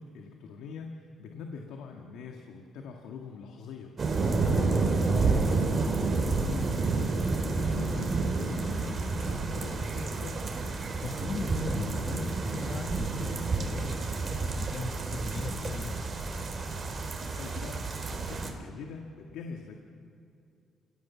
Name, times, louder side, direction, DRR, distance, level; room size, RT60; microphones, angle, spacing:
voice 1, 0.0-4.0 4.3-7.2 7.4-10.4 17.2-19.8, left 5 dB, 90° left, 2 dB, 1.9 m, -42 dB
sound 1, 4.0-18.5, right 3 dB, 40° right, 3.5 m, -30 dB
voice 2, 11.0-16.0, left 4 dB, 50° left, 6 dB, 1.8 m, -38 dB
30.0 x 18.0 x 7.3 m, 2.4 s
cardioid pair, 90°, 0 cm